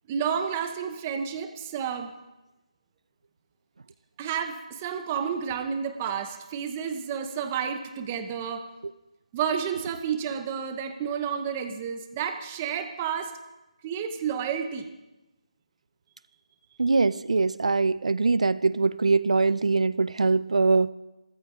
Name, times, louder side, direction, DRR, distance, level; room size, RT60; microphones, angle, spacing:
voice 1, 0.1-2.1 4.2-8.7 9.3-13.3 13.8-14.9, right 7 dB, 10° right, 0.8 m, -30 dB
voice 2, 16.8-20.9, right 3 dB, 60° right, 0.6 m, -22 dB
27.5 x 14.0 x 3.8 m
figure-of-eight pair, 175°, 4 cm